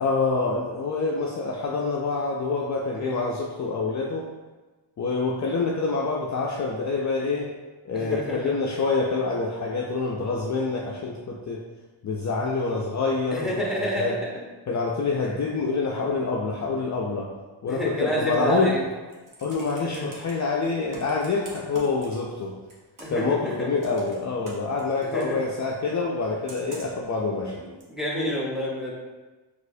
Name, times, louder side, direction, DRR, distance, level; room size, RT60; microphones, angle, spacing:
voice 1, 0.0-4.3 5.0-7.5 7.8-11.6 12.0-13.5 14.0-14.1 14.7-17.3 17.6-18.7 19.4-22.5 23.1-27.5, left 4 dB, 40° left, -2 dB, 0.4 m, -26 dB
voice 2, 7.9-8.6 13.3-14.4 17.7-18.8 19.8-20.1 23.0-23.7 25.0-25.4 27.9-28.9, equal, ahead, -3 dB, 0.8 m, -29 dB
Computer keyboard, 18.9-20.3 20.9-22.4 22.7-23.3 23.8-25.3 26.5-27.1 27.8-27.9, right 2 dB, 40° right, 0.9 m, -45 dB
4.1 x 2.5 x 2.6 m, 1.2 s
cardioid pair, 90°, 47 cm